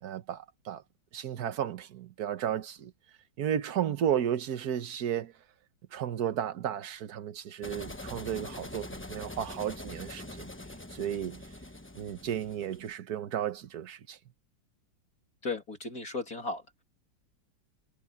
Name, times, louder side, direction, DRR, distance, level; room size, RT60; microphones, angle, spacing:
voice 1, 0.0-0.8 1.1-2.9 3.4-5.3 5.9-10.5 10.9-11.5 11.9-14.2, right 9 dB, 60° right, 1.5 m, -33 dB
sound 1, 7.6-12.9, left 1 dB, 15° left, 0.5 m, -44 dB
voice 2, 15.4-16.7, left 3 dB, 50° left, 3.1 m, -36 dB
omnidirectional pair, 2.0 m